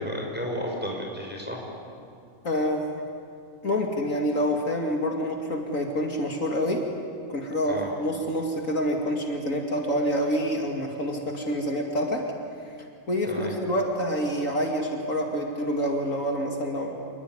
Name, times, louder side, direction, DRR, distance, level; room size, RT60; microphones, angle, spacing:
voice 1, 0.0-1.6 7.7-7.9 13.3-13.5, equal, 5° right, -1 dB, 6.3 m, -32 dB
voice 2, 2.4-3.0 3.6-6.9 7.3-12.3 12.6-12.8 13.1-17.0, equal, 60° left, 1 dB, 2.7 m, -27 dB
27.5 x 21.0 x 9.9 m, 2.5 s
omnidirectional pair, 1.6 m